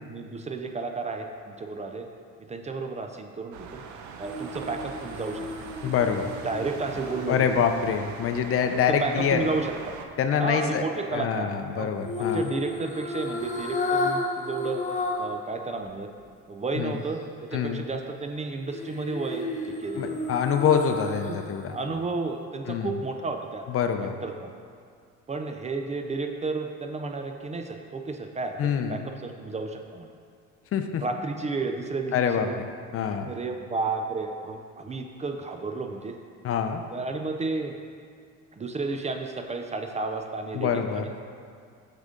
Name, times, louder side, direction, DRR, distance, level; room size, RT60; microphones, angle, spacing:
voice 1, 0.1-2.1 2.5-3.8 4.2-5.5 6.4-7.6 8.7-10.0 10.4-11.9 12.2-14.8 15.2-16.1 16.5-20.2 21.2-21.4 21.7-23.6 24.0-24.5 25.3-30.1 31.0-32.5 33.3-36.2 36.9-37.8 38.5-41.2, right 3 dB, 25° right, 4 dB, 0.5 m, -32 dB
sound 1, 3.5-10.1, right 6 dB, 70° right, 0.7 m, -42 dB
sound 2, 4.2-8.5 12.0-15.4 15.8-15.9 18.7-21.6 22.0-22.1, left 2 dB, 25° left, 0.9 m, -32 dB
voice 2, 5.8-6.3 7.3-9.4 10.2-10.8 11.1-12.5 16.8-17.0 17.5-17.8 20.0-21.8 22.7-23.0 23.7-24.1 28.6-29.1 30.7-31.0 32.1-32.7 32.9-33.3 36.4-36.8 40.5-41.1, left 7 dB, 50° left, 7 dB, 0.5 m, -25 dB
6.7 x 6.0 x 3.8 m, 2.2 s
cardioid pair, 100°, 30 cm